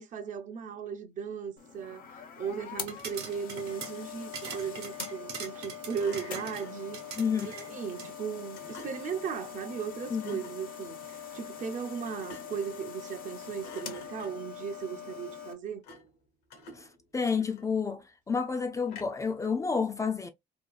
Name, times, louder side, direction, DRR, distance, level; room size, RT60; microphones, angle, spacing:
voice 1, 0.0-7.2 7.7-15.8, right 7 dB, 50° right, 0.6 m, -37 dB
sound 1, 1.6-15.5, left 8 dB, 55° left, 0.6 m, -43 dB
Thump thud, 2.4-3.2 6.0-6.9 8.5-9.2 10.1-10.6 12.0-12.7 13.1-13.3 13.6-14.6 15.8-16.2 16.5-17.9 18.9-19.3, left 2 dB, 80° left, 1.0 m, -50 dB
sound 2, 2.8-8.1, right 6 dB, 75° right, 1.0 m, -43 dB
voice 2, 7.1-7.8 10.1-10.4 16.8-16.9 17.1-20.3, left 5 dB, 20° left, 0.4 m, -30 dB
2.8 x 2.4 x 2.2 m
cardioid pair, 110°, 17 cm